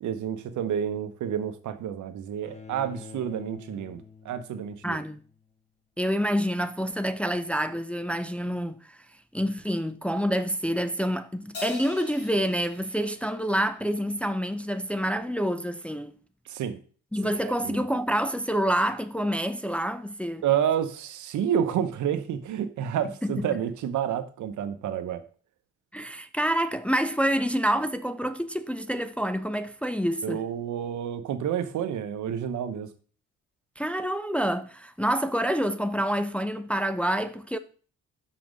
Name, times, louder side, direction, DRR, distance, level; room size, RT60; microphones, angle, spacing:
voice 1, 0.0-5.0 16.5-16.8 17.2-17.8 20.4-25.2 30.2-32.9, right 9 dB, 75° right, 1.0 m, -29 dB
Bowed string instrument, 2.4-5.5, left 5 dB, 20° left, 1.3 m, -47 dB
voice 2, 4.8-5.2 6.0-9.0 9.3-16.1 17.1-20.4 23.2-23.6 25.9-30.4 33.8-37.6, equal, 5° left, 0.5 m, -27 dB
Crash cymbal, 11.5-14.2, left 3 dB, 50° left, 3.1 m, -42 dB
6.2 x 5.9 x 5.3 m
cardioid pair, 90°, 30 cm